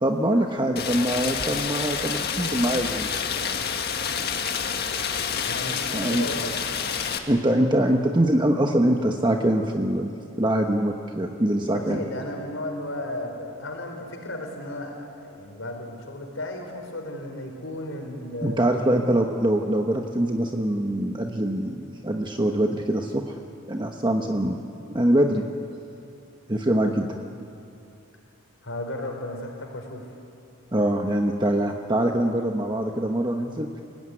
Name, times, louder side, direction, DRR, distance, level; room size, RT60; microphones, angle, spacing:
voice 1, 0.0-3.1 5.9-6.2 7.3-12.0 18.4-23.3 23.7-24.6 24.9-25.4 26.5-27.2 30.7-33.7, right 1 dB, 20° right, 3 dB, 1.1 m, -23 dB
Rain, 0.8-7.2, left 6 dB, 50° left, 1.7 m, -28 dB
voice 2, 5.4-6.5 11.5-18.7 28.6-30.1, left 1 dB, 65° left, 3 dB, 4.7 m, -34 dB
29.0 x 17.5 x 9.8 m, 2.6 s
head